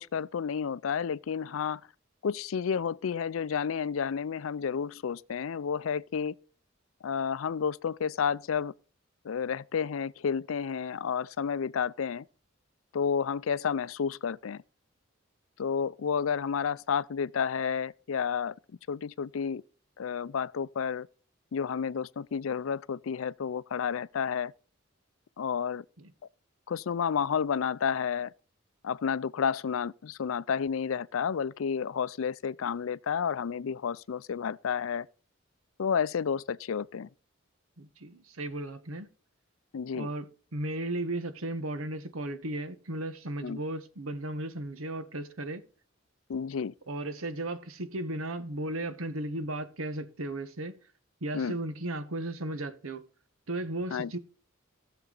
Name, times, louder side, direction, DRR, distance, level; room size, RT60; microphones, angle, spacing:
voice 1, 0.0-1.8 2.2-6.3 7.0-8.7 9.2-12.3 12.9-14.6 15.6-18.6 18.9-19.6 20.0-21.1 21.5-24.5 25.4-25.8 26.7-28.3 28.8-35.1 35.8-37.1 39.7-40.1 43.4-43.6 46.3-46.7 51.3-51.6 53.9-54.1, left 6 dB, 80° left, 0.4 m, -31 dB
voice 2, 37.8-39.1 39.9-40.3 40.5-45.6 46.9-50.7 51.2-53.1 53.5-54.2, right 1 dB, 90° right, 1.1 m, -35 dB
17.5 x 6.9 x 3.9 m
head